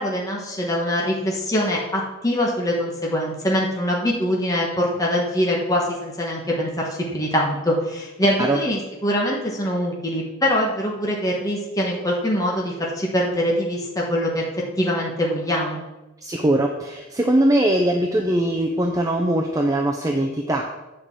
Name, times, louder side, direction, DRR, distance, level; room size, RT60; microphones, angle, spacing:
voice 1, 0.0-14.4 14.8-15.8, equal, 15° left, -2 dB, 1.5 m, -23 dB
voice 2, 16.2-20.6, right 1 dB, 15° right, 2 dB, 0.6 m, -21 dB
8.9 x 5.1 x 7.3 m, 1.0 s
head